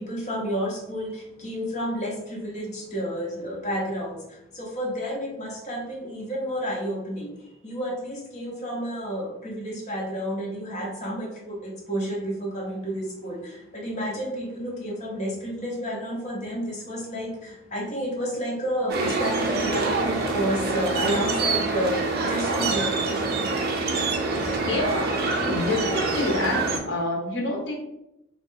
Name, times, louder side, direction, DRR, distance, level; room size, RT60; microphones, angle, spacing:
voice 1, 0.0-7.4 7.6-23.4, equal, 35° left, -3 dB, 1.0 m, -31 dB
sound 1, 18.9-26.8, right 3 dB, 50° right, 0.5 m, -26 dB
voice 2, 24.5-27.7, left 2 dB, 60° left, -1 dB, 0.8 m, -28 dB
3.1 x 2.3 x 3.6 m, 0.86 s
head